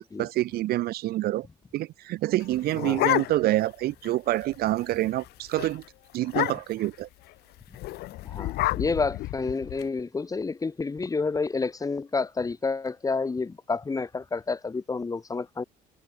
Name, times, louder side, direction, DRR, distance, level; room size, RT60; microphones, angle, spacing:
voice 1, 0.0-1.5 1.7-5.8 6.1-7.1, right 16 dB, 65° right, 0.5 m, -27 dB
sound 1, 2.4-3.7 4.0-4.1 4.4-4.7 5.1-5.3 5.6-5.7 6.2-6.9 7.8-9.8, left 18 dB, 70° left, 0.5 m, -29 dB
voice 2, 8.2-15.6, left 4 dB, 20° left, 1.7 m, -29 dB
cardioid pair, 110°, 17 cm